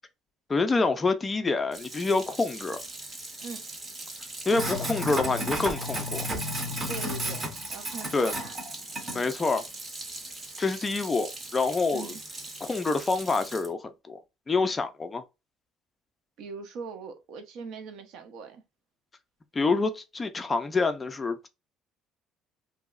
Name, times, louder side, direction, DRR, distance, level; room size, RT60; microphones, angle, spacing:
voice 1, 0.5-2.8 4.5-6.3 8.1-8.3 9.1-9.6 10.6-12.1 12.6-14.2 14.5-15.2 19.5-21.5, left 3 dB, 15° left, 0.3 m, -27 dB
Sink (filling or washing), 1.7-13.7, equal, 20° right, 0.7 m, -35 dB
voice 2, 6.9-7.4 7.7-8.6 9.0-9.3 11.9-12.2 16.4-18.6, right 4 dB, 60° right, 0.7 m, -40 dB
2.9 x 2.7 x 2.4 m
cardioid pair, 165°, 0 cm